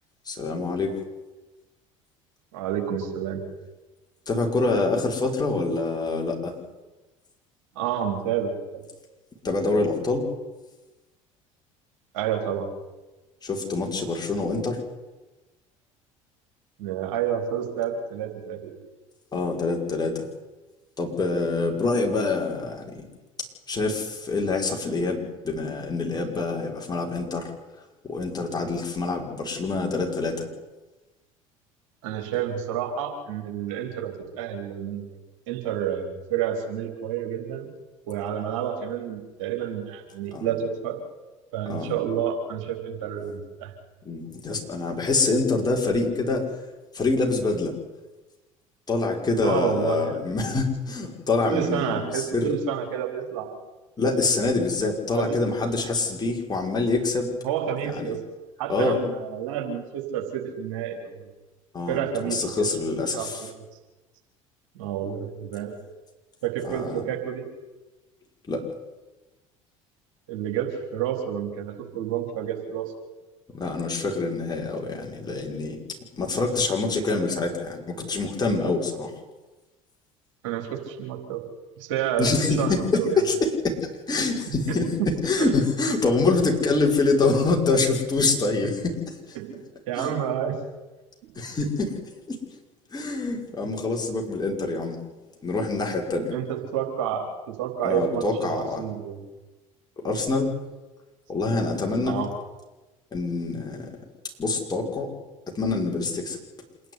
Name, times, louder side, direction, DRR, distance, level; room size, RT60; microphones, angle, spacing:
voice 1, 0.3-1.0 4.3-6.5 9.4-10.3 13.4-14.8 19.3-20.3 21.0-23.0 23.7-27.5 28.0-30.5 40.3-40.5 41.7-41.9 44.0-46.5 46.9-47.7 48.9-52.5 54.0-57.3 57.9-58.1 58.7-59.0 61.7-62.0 62.2-63.5 66.6-67.0 68.5-68.6 73.5-75.8 76.2-79.1 82.2-83.3 83.6-85.0 85.2-89.0 89.3-89.4 90.0-90.1 91.4-91.9 92.3-92.4 92.9-95.0 95.4-96.3 97.8-98.8 100.0-100.5 101.3-102.2 103.1-103.9 104.4-105.1 105.5-106.4, left 3 dB, 25° left, 1 dB, 5.9 m, -25 dB
voice 2, 2.5-3.4 7.8-8.8 12.1-12.7 16.8-18.7 32.0-35.2 35.5-37.7 38.1-41.0 41.5-43.7 49.4-50.2 51.4-53.6 55.2-55.4 57.4-58.2 58.6-61.1 61.9-62.7 63.1-63.5 64.8-65.8 66.4-67.4 70.3-72.9 80.4-81.4 81.8-82.3 82.6-83.2 84.7-85.1 85.4-85.5 89.3-89.6 89.9-90.5 91.6-91.7 96.3-99.2 102.1-102.3, right 9 dB, 65° right, 3 dB, 4.0 m, -29 dB
26.5 x 11.0 x 9.8 m, 1.2 s
figure-of-eight pair, 65°, 17 cm